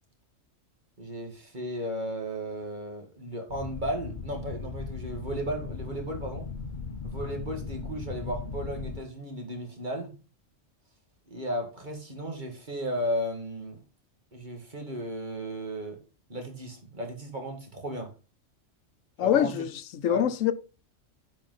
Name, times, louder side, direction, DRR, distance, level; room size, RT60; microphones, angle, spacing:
voice 1, 1.0-6.5 7.0-10.1 11.3-13.8 14.3-16.0 16.3-18.1 19.2-19.5 20.1-20.3, equal, 40° right, 2.2 m, -35 dB
sound 1, 3.5-9.0, left 5 dB, 45° left, 1.0 m, -38 dB
voice 2, 19.2-20.5, left 10 dB, 80° left, 1.1 m, -25 dB
9.9 x 5.3 x 4.0 m
omnidirectional pair, 1.3 m